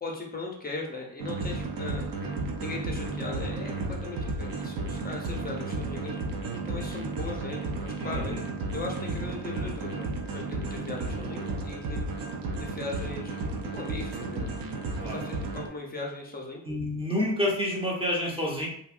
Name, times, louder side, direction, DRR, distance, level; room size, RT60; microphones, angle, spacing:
voice 1, 0.0-2.1 2.6-3.7 4.0-6.2 6.7-8.4 8.7-12.1 12.6-13.4 13.7-14.5 15.0-16.6, left 3 dB, 20° left, 0 dB, 0.6 m, -38 dB
sound 1, 1.2-15.7, right 3 dB, 50° right, 0.6 m, -33 dB
voice 2, 8.0-8.4 15.0-15.2 16.6-18.7, left 1 dB, 15° right, -2 dB, 0.8 m, -29 dB
2.8 x 2.5 x 2.4 m, 0.67 s
cardioid pair, 110°, 44 cm